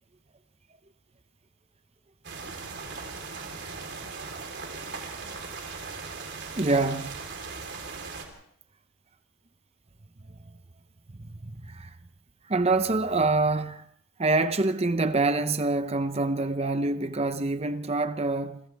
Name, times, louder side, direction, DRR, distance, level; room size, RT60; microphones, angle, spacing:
sound 1, 2.2-8.2, right 4 dB, 50° right, 3.8 m, -38 dB
voice 1, 6.6-7.2 10.3-10.5 11.1-12.0 12.4-13.8 14.2-18.6, right 3 dB, 30° right, 0.7 m, -26 dB
28.5 x 26.0 x 3.5 m
head